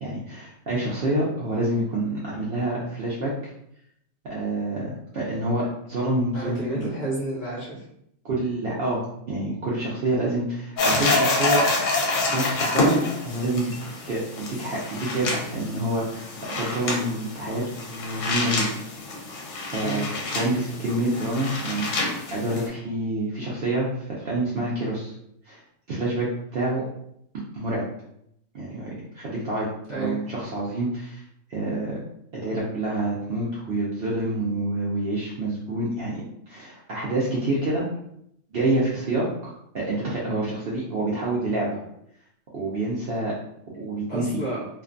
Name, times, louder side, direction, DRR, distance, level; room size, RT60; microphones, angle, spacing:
voice 1, 0.0-3.3 4.3-6.8 8.2-9.0 9.3-11.6 12.2-13.7 14.0-18.7 19.6-20.0 20.3-25.1 25.5-25.6 25.9-26.8 27.5-27.8 28.5-31.2 31.5-32.0 32.3-36.2 36.5-37.9 38.5-41.8 42.5-43.3 43.7-44.2, right 1 dB, 65° right, -5 dB, 0.6 m, -27 dB
voice 2, 6.3-7.8 19.8-20.2 29.9-30.2 44.1-44.7, right 2 dB, 40° left, -7 dB, 0.8 m, -31 dB
sound 1, 10.8-22.7, left 2 dB, 70° left, 0.9 m, -27 dB
2.5 x 2.2 x 2.5 m, 0.75 s
omnidirectional pair, 1.4 m